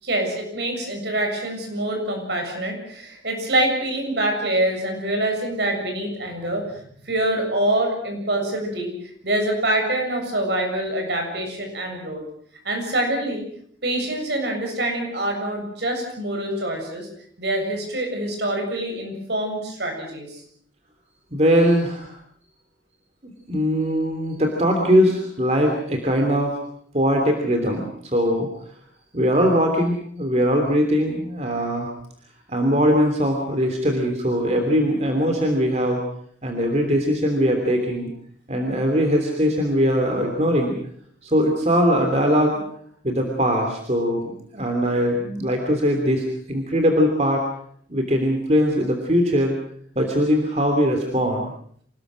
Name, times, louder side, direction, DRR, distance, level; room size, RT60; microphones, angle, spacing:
voice 1, 0.0-8.9 9.2-12.2 12.6-13.4 13.8-17.1 17.4-20.4, right 1 dB, 65° right, 3 dB, 7.4 m, -25 dB
voice 2, 21.3-22.1 23.2-26.6 26.9-28.5 29.1-31.9 32.5-36.0 36.4-38.1 38.5-40.7 41.2-42.6 43.0-47.4 47.9-49.5 49.9-51.5, equal, 35° right, 3 dB, 3.1 m, -21 dB
26.5 x 20.0 x 6.3 m, 0.62 s
head